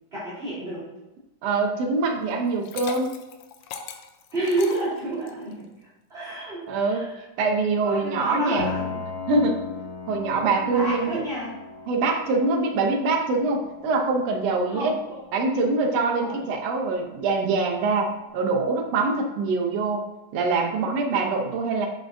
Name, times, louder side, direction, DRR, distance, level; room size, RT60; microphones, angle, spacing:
voice 1, 0.1-0.9 4.3-5.6 6.1-7.2 7.8-9.0 10.6-11.5 14.7-15.2 16.2-16.4, right 1 dB, 20° right, -12 dB, 1.9 m, -29 dB
voice 2, 1.4-3.2 6.7-7.1 7.4-8.7 9.3-9.6 10.1-11.2 11.9-14.9 15.3-20.0 20.3-21.9, right 3 dB, 75° right, 2 dB, 1.6 m, -24 dB
Liquid, 2.4-5.5, left 8 dB, 85° left, 2.2 m, -39 dB
Piano, 8.6-18.1, left 5 dB, 25° left, 2.3 m, -39 dB
7.3 x 6.3 x 2.6 m, 0.99 s
omnidirectional pair, 3.8 m